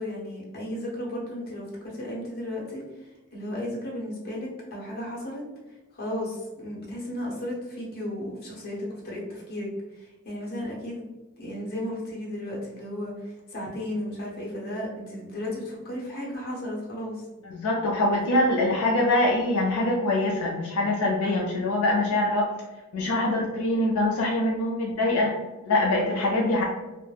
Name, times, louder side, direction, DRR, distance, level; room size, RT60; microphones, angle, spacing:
voice 1, 0.0-5.4 5.9-11.0 11.4-17.2, left 1 dB, 45° left, -4 dB, 0.9 m, -34 dB
voice 2, 17.4-22.5 22.9-25.3 25.7-26.6, left 1 dB, 75° left, -2 dB, 0.4 m, -24 dB
2.3 x 2.1 x 3.2 m, 1.1 s
head